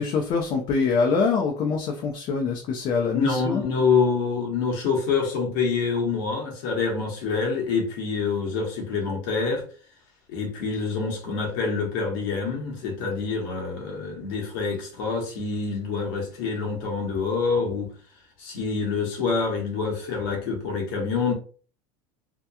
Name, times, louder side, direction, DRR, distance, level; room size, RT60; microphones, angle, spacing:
voice 1, 0.0-3.6, left 5 dB, 50° left, 0.5 m, -24 dB
voice 2, 3.1-9.6 10.3-17.9 18.4-21.3, left 5 dB, 75° left, 1.0 m, -26 dB
2.8 x 2.2 x 2.3 m
supercardioid pair, 115°, 11 cm